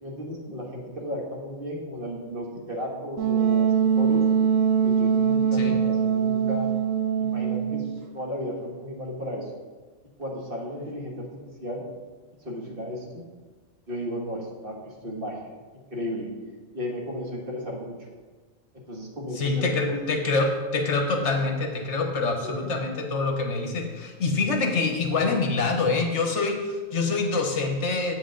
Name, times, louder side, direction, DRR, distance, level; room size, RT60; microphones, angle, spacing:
voice 1, 0.0-4.2 4.8-6.7 7.2-7.9 8.1-9.5 10.2-11.8 12.4-13.2 13.9-15.5 15.9-16.3 16.7-17.9 18.9-19.9 22.4-22.8, equal, 45° right, -2 dB, 1.6 m, -34 dB
Wind instrument woodwind instrument, 3.2-8.0, right 7 dB, 80° right, 1.0 m, -22 dB
voice 2, 19.4-28.1, left 3 dB, 60° left, 3 dB, 1.3 m, -25 dB
8.1 x 7.9 x 3.8 m, 1.4 s
omnidirectional pair, 1.4 m